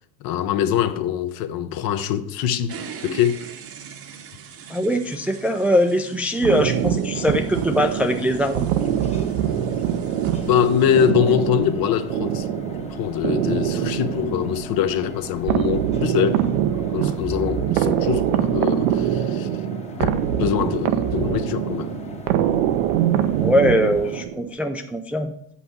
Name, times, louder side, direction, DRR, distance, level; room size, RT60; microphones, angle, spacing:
voice 1, 0.2-2.8 3.0-3.5 10.5-12.5 12.8-16.5 16.8-19.5 20.0-20.1 20.4-21.9, left 9 dB, 60° left, 0.8 m, -23 dB
sound 1, 2.7-11.1, right 7 dB, 35° right, 0.8 m, -41 dB
voice 2, 4.7-8.7 23.4-25.3, equal, 5° right, 0.3 m, -21 dB
sound 2, 6.4-24.5, right 11 dB, 90° right, 0.7 m, -24 dB
sound 3, 7.1-24.2, left 3 dB, 15° left, 0.9 m, -38 dB
7.9 x 5.8 x 4.2 m
supercardioid pair, 115°, 40 cm